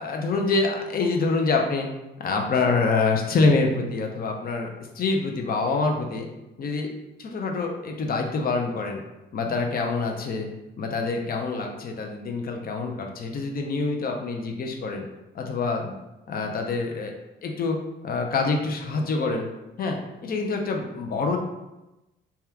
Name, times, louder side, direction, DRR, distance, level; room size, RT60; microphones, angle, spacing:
voice 1, 0.0-1.9 2.2-4.7 4.9-6.3 6.6-6.9 7.2-9.0 9.3-10.5 10.8-15.0 15.3-15.9 16.3-17.1 17.4-17.8 18.0-19.5 19.8-21.4, left 3 dB, 50° left, 2 dB, 0.6 m, -26 dB
2.8 x 2.3 x 3.5 m, 0.97 s
cardioid pair, 90°, 20 cm